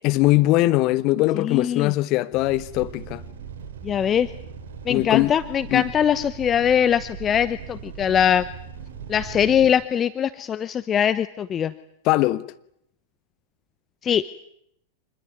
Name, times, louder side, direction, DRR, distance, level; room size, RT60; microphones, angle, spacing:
voice 1, 0.0-3.2 4.9-5.3 5.7-5.9 12.0-12.4, left 18 dB, 40° left, 1.4 m, -21 dB
voice 2, 1.4-1.9 3.8-4.3 4.9-8.5 9.1-11.7 14.0-14.2, left 9 dB, 25° left, 1.0 m, -22 dB
sound 1, 2.3-9.7, right 6 dB, 60° right, 4.2 m, -39 dB
26.0 x 21.0 x 9.4 m
figure-of-eight pair, 95°, 0 cm